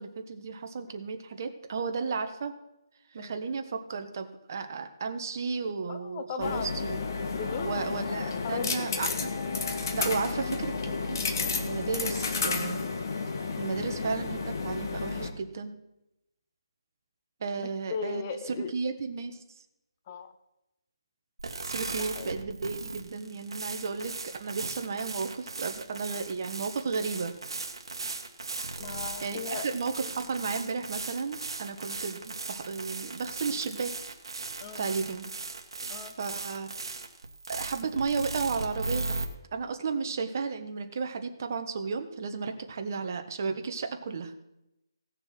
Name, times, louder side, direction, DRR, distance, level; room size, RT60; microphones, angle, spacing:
voice 1, 0.0-2.5 3.1-7.0 7.6-9.3 9.9-12.9 13.6-15.7 17.4-19.4 21.6-24.1 24.4-27.3 29.2-33.9 34.8-35.3 36.2-36.7 37.5-44.3, right 5 dB, 40° right, 6 dB, 1.3 m, -33 dB
voice 2, 5.9-6.7 7.3-8.0 8.4-8.9 13.8-14.0 17.6-18.7 20.1-20.3 21.9-22.3 28.8-29.7 34.6-34.9 35.9-36.2, left 6 dB, 25° left, 8 dB, 0.6 m, -38 dB
sound 1, 6.4-15.3, left 4 dB, 45° left, 1.4 m, -32 dB
sound 2, 21.4-39.3, right 3 dB, 70° right, 1.8 m, -37 dB
17.0 x 6.6 x 6.0 m, 0.90 s
hypercardioid pair, 170°, 3 cm